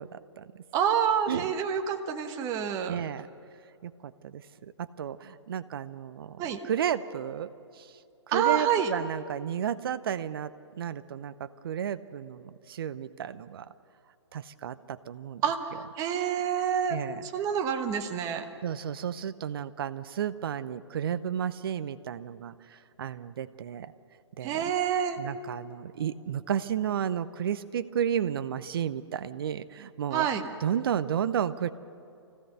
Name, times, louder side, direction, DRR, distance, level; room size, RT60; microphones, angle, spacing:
voice 1, 0.0-0.6 1.3-1.5 2.9-3.3 3.8-7.5 7.8-7.9 8.3-13.7 14.3-15.4 16.9-17.3 18.6-23.9 24.4-24.6 25.2-30.3 30.6-31.7, right 9 dB, 50° right, 14 dB, 0.8 m, -32 dB
voice 2, 0.7-2.9 6.4-6.6 8.3-8.9 15.4-18.4 24.4-25.2 30.1-30.4, right 8 dB, 20° right, 5 dB, 1.2 m, -28 dB
25.0 x 16.0 x 6.7 m, 2.6 s
figure-of-eight pair, 130°, 15 cm